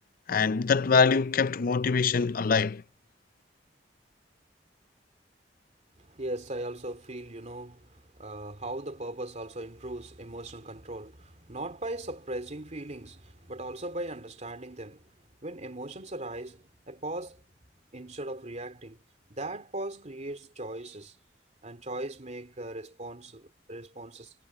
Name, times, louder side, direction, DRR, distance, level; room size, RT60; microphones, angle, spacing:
voice 1, 0.3-2.8, left 5 dB, 55° left, 0.5 m, -24 dB
voice 2, 6.0-15.1 15.4-17.4 17.9-19.0 19.3-21.2 21.6-24.3, right 1 dB, 40° right, 2.7 m, -39 dB
head